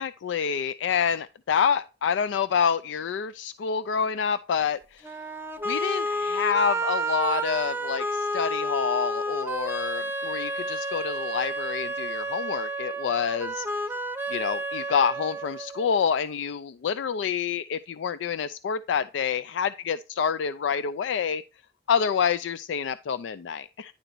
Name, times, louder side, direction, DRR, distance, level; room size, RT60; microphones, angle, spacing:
voice 1, 0.0-5.2 5.6-13.6 14.3-21.4 21.9-23.9, left 7 dB, 85° left, 0.3 m, -27 dB
sound 1, 5.0-16.0, right 1 dB, 10° right, 0.6 m, -30 dB
10.0 x 3.9 x 4.5 m
head